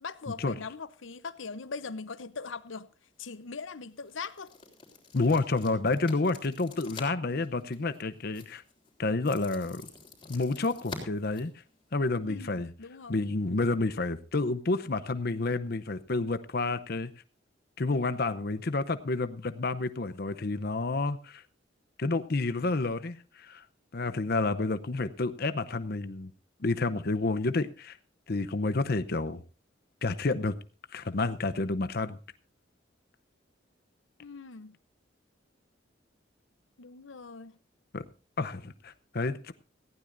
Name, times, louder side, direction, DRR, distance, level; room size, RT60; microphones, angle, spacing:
voice 1, 0.0-2.9 3.2-4.5 12.3-13.2 34.2-34.8 36.8-37.5, left 4 dB, 90° left, 0.8 m, -41 dB
sound 1, 3.1-12.2, left 3 dB, 25° left, 3.7 m, -49 dB
voice 2, 5.1-8.6 9.0-9.8 10.3-11.5 11.9-12.7 13.1-17.1 17.8-21.4 22.0-23.6 23.9-26.3 26.6-28.0 28.3-29.4 30.0-30.5 30.9-32.2 37.9-38.0 38.4-39.5, left 3 dB, 55° left, 0.7 m, -29 dB
18.5 x 15.5 x 2.6 m
head